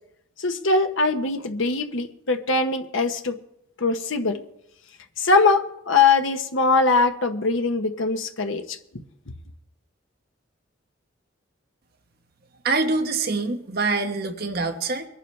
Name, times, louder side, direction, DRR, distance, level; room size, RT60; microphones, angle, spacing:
voice 1, 0.4-3.4 3.8-4.4 5.2-8.8, left 3 dB, 75° left, 1.1 m, -22 dB
voice 2, 12.6-15.1, right 3 dB, 50° right, 1.2 m, -25 dB
23.0 x 11.5 x 3.3 m
head